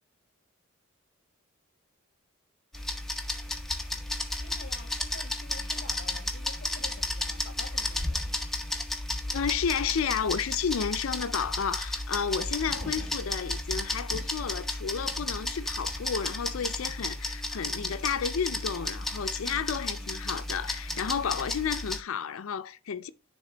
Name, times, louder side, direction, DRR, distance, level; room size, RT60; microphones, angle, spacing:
sound 1, 2.7-22.0, left 1 dB, ahead, 0.7 m, -33 dB
voice 1, 4.4-8.3, left 3 dB, 50° left, 0.9 m, -48 dB
voice 2, 9.3-23.1, left 7 dB, 75° left, 0.5 m, -32 dB
9.8 x 3.6 x 3.9 m
head